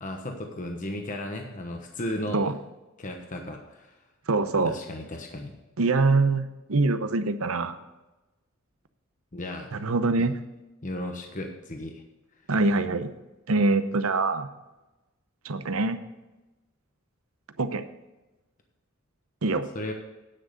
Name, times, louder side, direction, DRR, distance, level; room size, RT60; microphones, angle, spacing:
voice 1, 0.0-2.4 3.0-3.9 4.6-5.5 9.3-9.7 10.8-12.0 19.7-19.9, left 1 dB, 40° left, 3 dB, 1.1 m, -35 dB
voice 2, 4.3-4.7 5.8-7.8 9.7-10.4 12.5-13.1 13.5-14.5 15.4-16.0 17.6-17.9 19.4-19.7, right 3 dB, 85° right, 11 dB, 0.8 m, -24 dB
10.0 x 6.3 x 6.5 m, 1.1 s
head